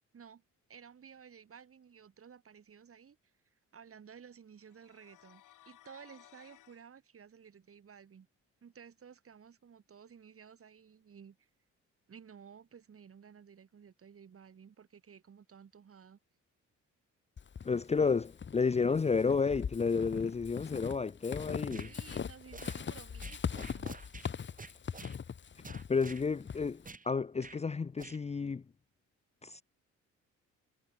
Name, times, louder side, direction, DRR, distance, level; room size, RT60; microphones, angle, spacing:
voice 1, 0.7-3.3 3.7-8.3 8.6-11.5 12.1-16.2 21.8-23.9, right 7 dB, 50° right, 6.0 m, -55 dB
sound 1, 4.6-6.8, left 14 dB, 85° left, 5.8 m, -60 dB
Walk footsteps / Squeak, 17.4-27.0, left 7 dB, 40° left, 1.5 m, -41 dB
voice 2, 17.6-21.9 25.9-28.6 29.4-29.6, left 5 dB, 20° left, 0.6 m, -31 dB
sound 2, 21.7-21.9 22.5-22.8 23.2-24.3 24.6-25.2 25.6-26.2 26.8-27.1 27.4-27.6 28.0-28.2, right 4 dB, 25° right, 3.9 m, -48 dB
cardioid pair, 90°, 30 cm